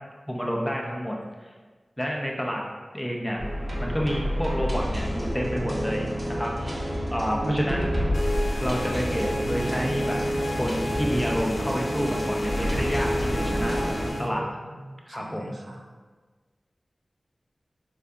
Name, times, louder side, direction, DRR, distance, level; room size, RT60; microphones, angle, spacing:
voice 1, 0.3-1.5 2.0-2.6 2.9-3.4 3.8-7.9 8.5-10.2 10.6-13.8 14.2-14.5 15.1-15.5, equal, 10° left, -1 dB, 0.5 m, -29 dB
sound 1, 3.4-14.1, equal, 40° right, 0.7 m, -29 dB
voice 2, 7.4-8.2 14.1-15.8, right 1 dB, 80° right, 0 dB, 0.4 m, -35 dB
sound 2, 8.1-14.3, equal, 75° left, 0.4 m, -33 dB
4.6 x 2.6 x 2.3 m, 1.4 s
wide cardioid pair, 85°, 0 cm